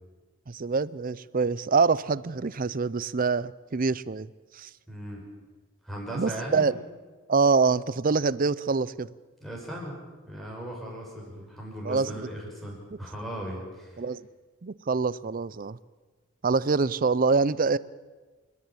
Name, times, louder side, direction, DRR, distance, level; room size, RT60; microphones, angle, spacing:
voice 1, 0.5-4.3 4.6-4.7 6.1-6.7 7.3-9.1 11.8-12.1 14.0-14.3 14.6-15.8 16.4-17.8, right 4 dB, 40° right, 19 dB, 0.5 m, -25 dB
voice 2, 4.9-5.2 5.8-6.7 9.4-9.9 10.3-14.0, right 1 dB, ahead, -2 dB, 6.0 m, -37 dB
29.0 x 11.0 x 8.6 m, 1.3 s
head